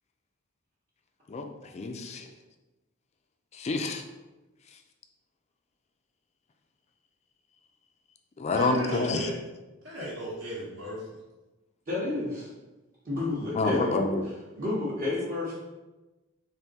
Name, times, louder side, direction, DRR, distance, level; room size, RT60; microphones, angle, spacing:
voice 1, 1.7-2.3 3.5-4.0 8.4-9.3 13.5-14.2, left 3 dB, 30° left, 6 dB, 0.3 m, -28 dB
voice 2, 8.5-9.4 9.8-11.1, equal, 65° right, -9 dB, 1.1 m, -35 dB
voice 3, 11.9-12.5 13.0-14.1 14.6-15.5, left 2 dB, 40° right, -10 dB, 0.9 m, -30 dB
3.6 x 2.6 x 4.0 m, 1.1 s
head